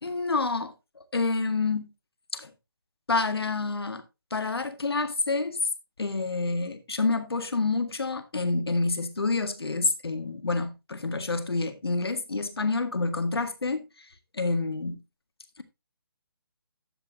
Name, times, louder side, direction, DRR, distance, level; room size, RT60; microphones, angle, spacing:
voice 1, 0.0-0.7 1.1-1.9 2.3-2.5 3.1-4.0 4.3-5.6 6.0-13.9 14.3-15.0, left 3 dB, 85° left, 1.8 m, -28 dB
12.0 x 8.4 x 2.7 m
figure-of-eight pair, 155°, 13 cm